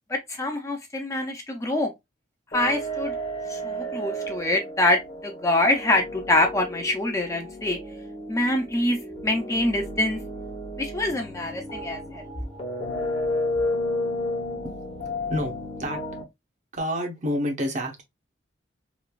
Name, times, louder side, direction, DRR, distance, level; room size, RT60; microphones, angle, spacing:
voice 1, 0.1-1.9 2.5-3.2 3.5-7.8 8.3-10.2 10.8-12.2, left 1 dB, 15° left, 0.5 m, -25 dB
sound 1, 2.5-16.2, left 1 dB, 35° left, 0.8 m, -32 dB
voice 2, 15.3-16.0 16.7-18.0, equal, 40° right, 0.8 m, -28 dB
3.1 x 2.4 x 2.2 m
head